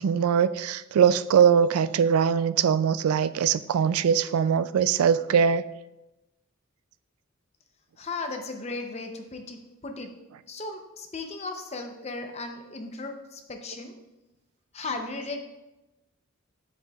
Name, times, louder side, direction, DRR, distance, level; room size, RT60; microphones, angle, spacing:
voice 1, 0.0-5.6, right 7 dB, 90° right, 15 dB, 0.3 m, -22 dB
voice 2, 8.0-10.1 10.5-13.9 14.7-15.4, left 3 dB, 30° left, 5 dB, 0.6 m, -36 dB
7.8 x 7.6 x 2.3 m, 0.99 s
head